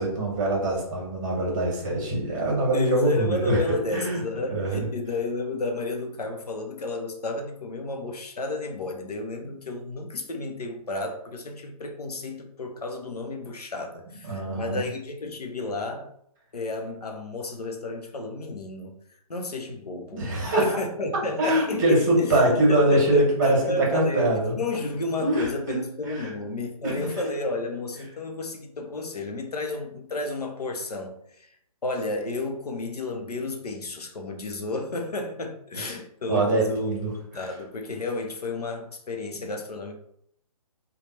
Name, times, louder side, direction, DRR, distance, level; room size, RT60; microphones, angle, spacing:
voice 1, 0.0-4.2 4.5-4.9 14.2-14.9 20.1-20.8 21.4-24.6 25.2-25.8 26.1-26.3 26.8-27.1 36.3-37.1 39.4-39.5, right 1 dB, 30° right, -2 dB, 1.4 m, -23 dB
voice 2, 2.7-16.1 16.5-19.0 19.3-22.4 22.7-31.5 31.8-36.9 37.3-40.0, left 2 dB, 90° left, 3 dB, 0.9 m, -32 dB
3.2 x 2.4 x 4.3 m, 0.70 s
hypercardioid pair, 155°, 19 cm